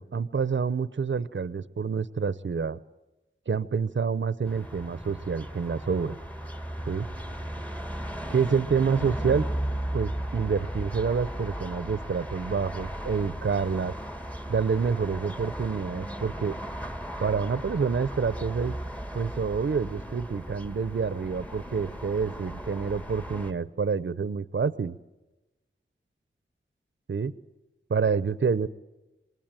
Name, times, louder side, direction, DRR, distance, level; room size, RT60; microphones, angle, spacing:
voice 1, 0.0-2.8 3.5-6.2 6.9-7.1 8.3-9.5 9.9-13.9 14.5-16.5 17.2-18.7 19.1-24.9 27.1-27.3 27.9-28.7, right 5 dB, 65° right, 15 dB, 0.9 m, -27 dB
sound 1, 4.4-23.5, equal, 5° left, 1.6 m, -36 dB
27.0 x 21.0 x 9.2 m, 1.0 s
wide cardioid pair, 85°, 21 cm